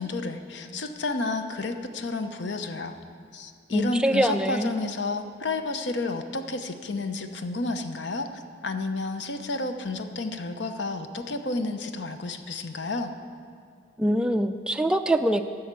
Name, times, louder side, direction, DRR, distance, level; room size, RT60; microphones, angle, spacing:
voice 1, 0.0-3.0 3.3-13.1, left 3 dB, 70° left, 8 dB, 0.8 m, -31 dB
voice 2, 3.7-4.7 14.0-15.4, right 1 dB, 5° right, 6 dB, 0.3 m, -24 dB
12.0 x 6.4 x 8.2 m, 2.2 s
head